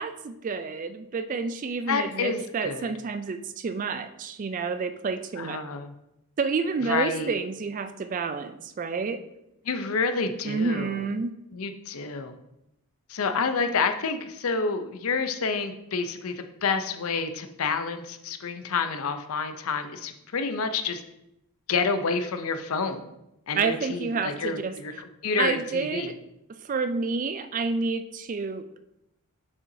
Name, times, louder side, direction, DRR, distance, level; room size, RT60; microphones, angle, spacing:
voice 1, 0.0-5.6 6.4-9.2 10.4-11.3 23.6-25.0 25.4-26.1 26.6-28.8, right 4 dB, 35° right, 10 dB, 0.3 m, -29 dB
voice 2, 1.9-2.9 5.4-5.9 6.9-7.4 9.7-11.0 11.5-12.4 13.1-21.0 21.7-23.1 23.5-24.9 25.2-26.1, left 4 dB, 70° left, 8 dB, 0.6 m, -29 dB
6.8 x 5.6 x 2.7 m, 0.84 s
head